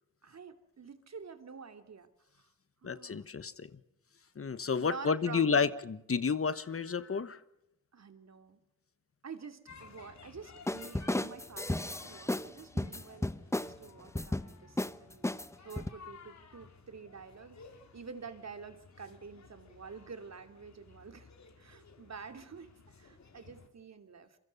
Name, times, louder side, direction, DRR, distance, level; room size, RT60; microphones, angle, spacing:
voice 1, 0.2-2.1 2.4-2.5 2.8-3.3 4.7-5.7 7.9-8.6 9.2-13.3 13.6-17.6 17.9-21.3 21.6-22.7 23.0-24.4, right 5 dB, 55° right, 8 dB, 2.8 m, -48 dB
voice 2, 2.8-3.7 4.4-7.4, left 5 dB, 45° left, 14 dB, 1.4 m, -31 dB
sound 1, 9.7-23.7, left 5 dB, 60° left, 3.3 m, -56 dB
sound 2, 10.7-12.5 12.8-13.7 14.1-14.5 14.8-14.9 15.2-15.9, left 1 dB, 10° left, 0.9 m, -33 dB
27.5 x 24.0 x 5.5 m, 0.83 s
cardioid pair, 85°, 31 cm